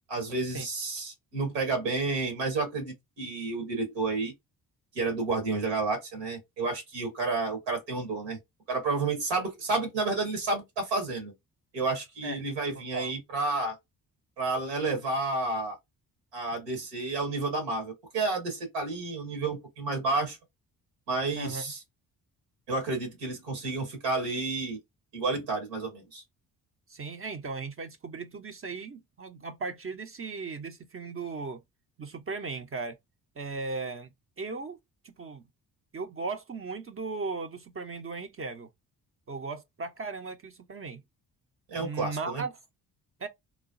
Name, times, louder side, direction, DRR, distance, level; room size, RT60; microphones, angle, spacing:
voice 1, 0.1-4.3 4.9-8.4 8.7-11.3 11.7-13.7 14.4-15.8 16.3-20.4 21.1-21.8 22.7-24.8 25.1-26.2 41.7-42.4, right 3 dB, 90° right, 1.3 m, -30 dB
voice 2, 26.9-31.6 32.0-33.0 33.4-34.1 34.4-34.8 35.0-35.4 35.9-38.7 39.3-41.0 41.8-42.5 43.2-43.3, right 4 dB, 30° right, 0.6 m, -37 dB
3.1 x 2.2 x 2.5 m
hypercardioid pair, 45°, 48 cm